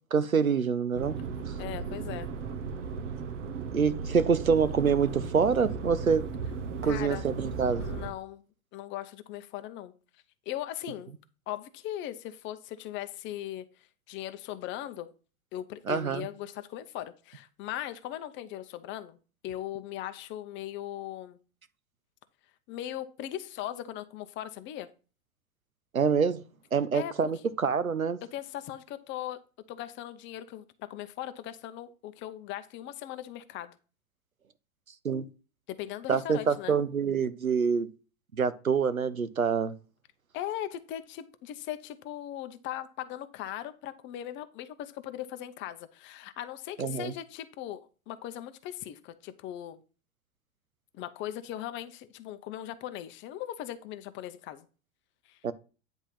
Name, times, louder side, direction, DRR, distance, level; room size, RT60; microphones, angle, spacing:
voice 1, 0.1-1.2 3.7-6.2 6.8-7.9 15.9-16.3 25.9-26.4 26.7-28.2 35.0-35.2 36.1-37.9 38.3-39.7 46.8-47.1 55.4-55.5, right 6 dB, 90° right, 0.7 m, -26 dB
sound 1, 0.9-8.1, right 5 dB, 65° right, 0.9 m, -36 dB
voice 2, 1.6-2.3 6.8-7.3 7.8-8.4 8.7-9.9 10.5-11.1 11.5-15.1 15.5-19.2 19.4-21.4 22.7-24.9 26.9-27.1 28.3-29.4 29.7-33.8 35.7-36.7 40.3-49.8 50.9-54.7 55.3-55.4, left 12 dB, 30° left, 0.7 m, -39 dB
9.6 x 3.6 x 5.7 m
figure-of-eight pair, 90°, 40 cm